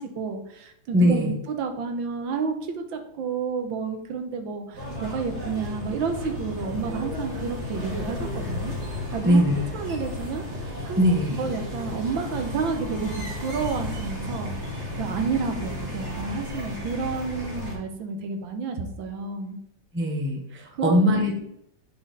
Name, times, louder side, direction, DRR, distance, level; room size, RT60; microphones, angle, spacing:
voice 1, 0.0-8.7 9.1-9.4 9.7-10.4 10.8-11.0 11.3-14.5 15.0-19.6 20.7-21.0, right 5 dB, 85° right, 5 dB, 1.7 m, -30 dB
voice 2, 0.9-1.3 9.2-9.5 11.0-11.5 19.9-21.4, equal, 10° right, 1 dB, 0.6 m, -21 dB
sound 1, 4.7-17.7, left 1 dB, 35° right, 2.2 m, -33 dB
7.8 x 4.1 x 3.9 m, 0.76 s
omnidirectional pair, 2.1 m